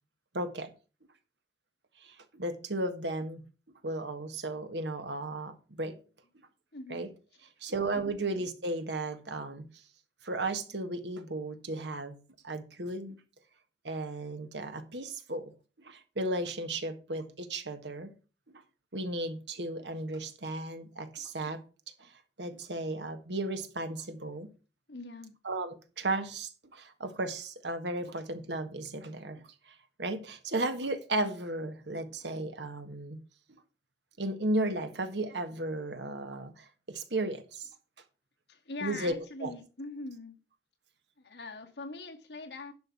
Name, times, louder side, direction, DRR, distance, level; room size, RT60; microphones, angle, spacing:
voice 1, 0.3-0.7 2.0-3.4 3.8-6.0 6.9-7.1 7.6-9.7 10.2-12.2 12.4-13.2 13.8-15.5 15.8-18.1 18.9-21.6 22.0-22.1 22.4-24.5 25.4-33.2 34.2-37.7 38.8-39.5, right 2 dB, 85° right, 1.6 m, -35 dB
voice 2, 6.7-7.1 7.6-8.2 24.9-25.3 38.5-40.4 41.2-42.7, left 3 dB, 75° left, 2.0 m, -42 dB
10.5 x 5.9 x 5.9 m
head